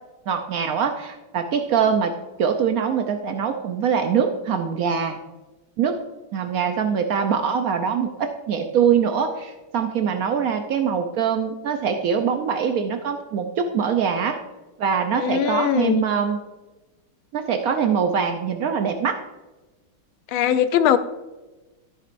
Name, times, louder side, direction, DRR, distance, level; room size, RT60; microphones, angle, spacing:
voice 1, 0.3-2.1 2.4-5.2 5.8-6.0 6.3-14.4 14.8-16.4 17.3-19.2, right 7 dB, 90° right, 5 dB, 0.7 m, -23 dB
voice 2, 15.2-16.0 20.3-21.0, left 10 dB, 80° left, 12 dB, 1.4 m, -20 dB
13.5 x 8.6 x 2.5 m, 1.1 s
omnidirectional pair, 2.3 m